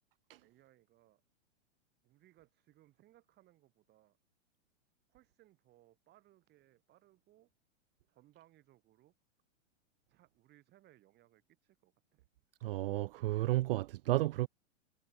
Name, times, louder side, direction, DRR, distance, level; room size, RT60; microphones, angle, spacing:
voice 1, 0.4-1.2 2.0-4.2 5.1-7.5 8.1-9.1 10.1-12.2, right 15 dB, 25° right, 4.9 m, -66 dB
voice 2, 12.6-14.5, right 17 dB, 50° right, 0.5 m, -32 dB
hypercardioid pair, 145°, 37 cm